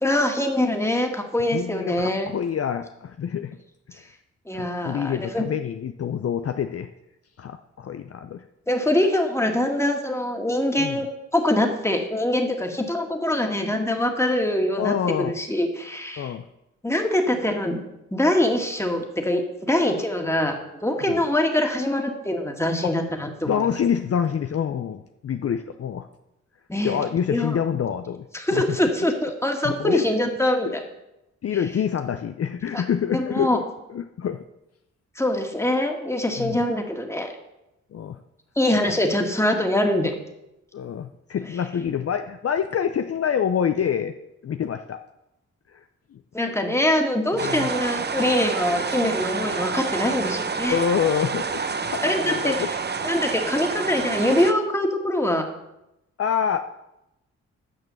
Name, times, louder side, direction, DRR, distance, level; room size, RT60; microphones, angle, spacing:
voice 1, 0.0-2.3 4.5-5.4 8.7-11.1 11.3-16.3 16.8-17.8 18.1-23.7 26.7-27.0 27.3-27.6 28.3-30.8 32.7-32.8 33.1-33.6 35.2-37.3 38.6-40.1 46.3-50.8 52.0-52.6 53.0-55.5, left 1 dB, 10° left, 3 dB, 2.0 m, -23 dB
voice 2, 1.5-3.6 4.5-6.9 7.4-8.4 10.8-11.0 14.8-15.3 16.2-16.4 21.0-21.2 22.8-22.9 23.4-26.1 26.8-28.3 28.5-28.6 29.6-30.0 30.6-30.7 31.4-33.6 33.9-34.4 36.4-36.6 37.9-38.2 38.8-38.9 40.7-44.1 44.4-45.0 45.7-45.8 46.1-46.2 47.3-47.7 50.7-52.7 56.2-56.6, left 8 dB, 50° left, 8 dB, 0.6 m, -26 dB
sound 1, 47.4-54.5, right 5 dB, 35° right, 0.8 m, -28 dB
9.4 x 6.0 x 7.1 m, 0.89 s
cardioid pair, 55°, 30 cm